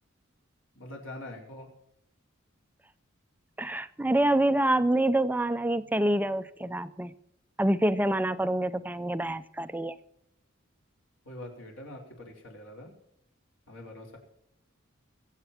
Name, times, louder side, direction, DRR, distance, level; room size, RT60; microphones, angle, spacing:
voice 1, 0.7-1.7 11.2-12.9 13.7-14.2, left 1 dB, 70° left, 0 dB, 4.7 m, -44 dB
voice 2, 3.6-7.2 7.6-10.0, right 1 dB, 10° right, 12 dB, 0.5 m, -26 dB
23.0 x 8.2 x 4.4 m, 0.78 s
head